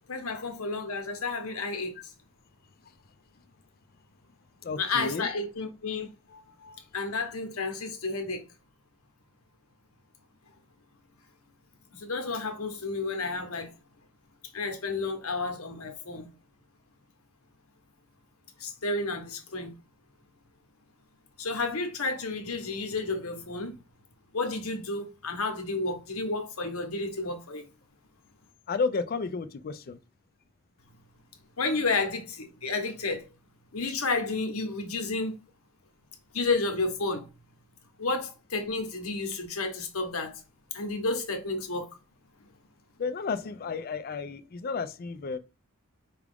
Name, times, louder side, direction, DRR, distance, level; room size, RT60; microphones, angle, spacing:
voice 1, 0.1-1.9 4.8-8.4 11.9-13.7 14.5-16.3 18.6-19.7 21.4-23.8 24.3-27.6 31.6-33.3 33.7-35.4 36.3-37.2 38.0-40.4 40.7-41.9, left 3 dB, 80° left, 1.0 m, -31 dB
voice 2, 4.6-5.3 28.7-30.0 43.0-45.4, left 4 dB, 45° left, 0.4 m, -32 dB
4.8 x 2.4 x 3.4 m
head